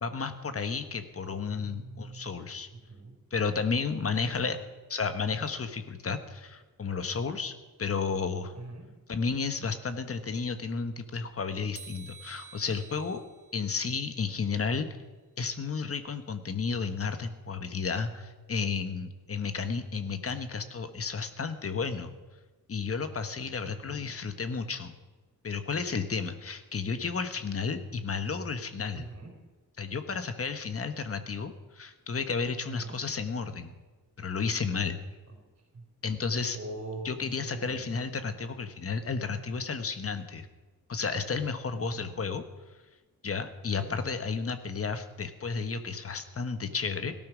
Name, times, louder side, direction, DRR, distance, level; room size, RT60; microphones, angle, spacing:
voice 1, 0.0-2.7 3.3-4.6 4.9-8.5 9.1-13.2 13.5-14.9 15.4-22.1 22.7-24.9 25.4-29.1 29.8-33.7 34.2-35.0 36.0-36.6 37.0-40.5 40.9-42.4 43.2-47.1, left 5 dB, 40° left, 9 dB, 1.2 m, -32 dB
voice 2, 1.3-2.4 2.7-3.1 3.9-4.5 8.5-8.8 23.7-24.1 28.9-29.3 32.7-33.0 35.7-35.8 36.5-37.1 37.4-38.0 41.8-42.3 43.8-43.9, right 2 dB, 35° right, 1 dB, 4.0 m, -43 dB
sound 1, 11.8-14.8, right 6 dB, 20° right, 1.8 m, -51 dB
17.5 x 12.5 x 6.2 m, 1.2 s
wide cardioid pair, 150°, 37 cm